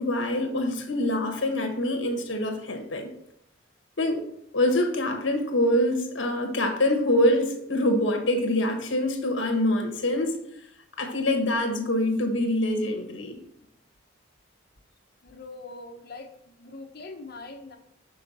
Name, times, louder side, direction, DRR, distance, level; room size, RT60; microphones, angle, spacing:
voice 1, 0.0-3.1 4.0-4.2 4.5-10.3 11.0-13.4, left 1 dB, 65° left, 5 dB, 1.2 m, -25 dB
voice 2, 15.2-16.3 16.6-17.8, left 3 dB, 50° left, 4 dB, 0.9 m, -42 dB
6.4 x 4.5 x 4.2 m, 0.73 s
head